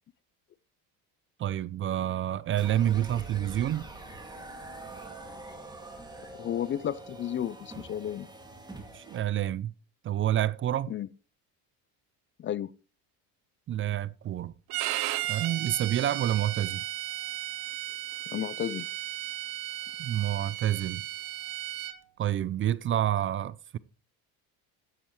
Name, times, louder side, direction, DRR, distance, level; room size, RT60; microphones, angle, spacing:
voice 1, 1.4-3.9 8.9-9.7 10.0-10.9 13.7-14.5 15.3-16.8 20.0-21.0 22.2-23.8, right 11 dB, 35° right, 0.4 m, -28 dB
sound 1, 2.5-9.3, right 2 dB, 10° right, 2.3 m, -44 dB
voice 2, 6.4-8.3 10.9-11.1 12.4-12.7 18.3-18.9, left 10 dB, 35° left, 0.5 m, -32 dB
Bowed string instrument, 14.7-22.0, right 15 dB, 75° right, 1.1 m, -35 dB
13.0 x 10.0 x 3.1 m
cardioid pair, 115°, 36 cm